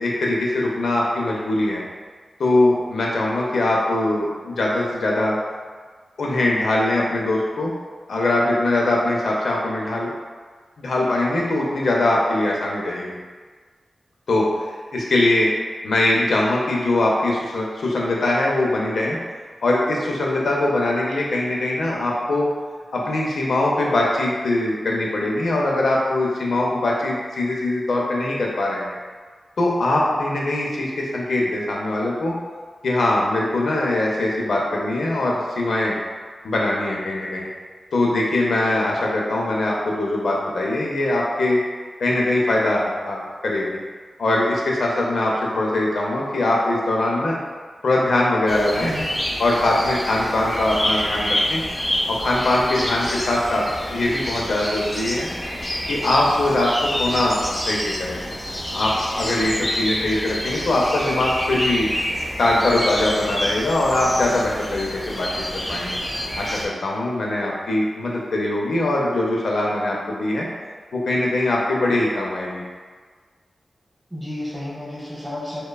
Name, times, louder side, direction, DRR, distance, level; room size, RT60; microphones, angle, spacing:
voice 1, 0.0-1.8 2.4-5.4 6.2-7.7 8.1-10.1 10.8-13.2 14.3-15.5 15.8-19.2 19.6-22.5 22.9-28.9 29.6-32.3 32.8-35.9 36.4-37.5 37.9-41.6 42.0-43.8 44.2-47.4 47.8-48.9 49.4-51.6 52.1-55.3 55.8-58.2 58.7-61.9 62.4-65.3 65.7-66.0 66.4-70.5 70.9-72.6, left 2 dB, 85° left, -3 dB, 0.5 m, -22 dB
sound 1, 48.5-66.7, equal, 35° left, 0.8 m, -27 dB
voice 2, 48.8-49.2 74.1-75.6, left 1 dB, 5° right, -10 dB, 1.2 m, -31 dB
3.1 x 2.1 x 2.3 m, 1.5 s
wide cardioid pair, 105°, 0 cm